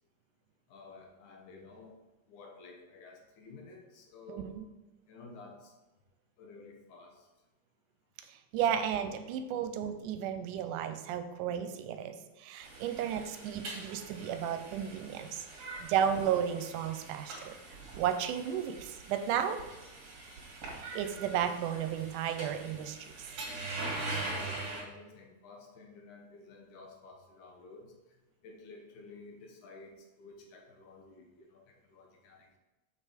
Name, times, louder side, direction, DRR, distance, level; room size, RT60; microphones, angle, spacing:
voice 1, 0.7-2.0 2.3-4.5 5.1-5.7 6.4-7.3 24.2-27.9 28.4-32.6, left 3 dB, 75° left, 2 dB, 2.5 m, -52 dB
voice 2, 4.3-4.6 8.3-15.5 15.8-17.6 18.0-19.6 20.7-23.3, right 9 dB, 85° right, 8 dB, 2.1 m, -33 dB
sound 1, 12.6-24.8, right 2 dB, 60° right, 2.8 m, -43 dB
6.5 x 5.5 x 5.0 m, 1.1 s
omnidirectional pair, 3.6 m